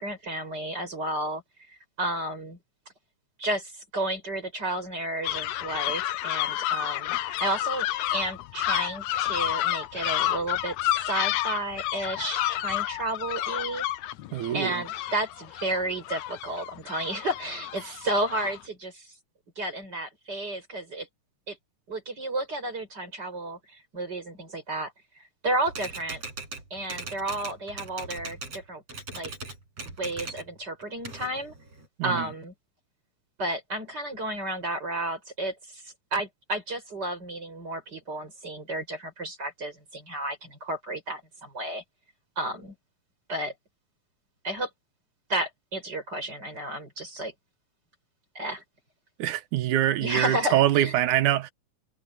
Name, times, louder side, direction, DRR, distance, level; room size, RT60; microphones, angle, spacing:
voice 1, 0.0-1.4 2.0-2.6 3.4-10.8 11.0-13.8 14.5-19.1 19.6-21.1 21.5-21.6 21.9-24.9 25.4-26.2 26.7-28.8 29.1-29.3 29.8-31.5 32.0-32.5 33.4-35.8 36.1-41.8 42.4-42.7 43.3-43.5 44.4-44.7 45.3-47.3 48.3-48.6 50.0-50.9, right 1 dB, 30° right, 6.5 m, -32 dB
sound 1, 5.2-18.6, left 14 dB, 75° left, 2.0 m, -30 dB
voice 2, 14.3-14.8 32.0-32.3 49.2-51.5, right 13 dB, 85° right, 2.5 m, -24 dB
Typewriter, 25.7-28.6 28.9-30.5 30.8-31.9, right 3 dB, 55° right, 7.9 m, -39 dB
omnidirectional pair, 3.4 m